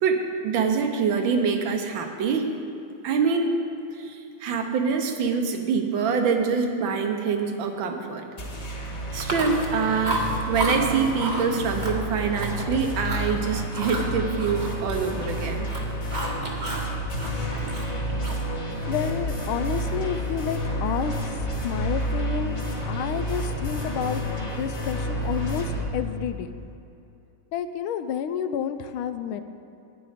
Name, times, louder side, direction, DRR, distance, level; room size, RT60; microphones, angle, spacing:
voice 1, 0.0-2.4 3.0-3.5 4.0-8.3 9.1-15.7, right 5 dB, 70° right, 5 dB, 1.5 m, -25 dB
sound 1, 8.4-25.8, equal, 35° left, 1.7 m, -30 dB
Chewing mastication, 9.2-9.7 10.0-10.8 11.2-11.5 11.8-12.6 13.0-13.3 13.7-15.4 15.6-16.9 17.2-18.5, right 1 dB, 30° right, 0.9 m, -31 dB
voice 2, 18.9-21.1 21.6-22.6 22.8-26.5 27.5-29.4, left 8 dB, 80° left, 10 dB, 1.4 m, -30 dB
10.5 x 9.7 x 5.0 m, 2.7 s
omnidirectional pair, 2.3 m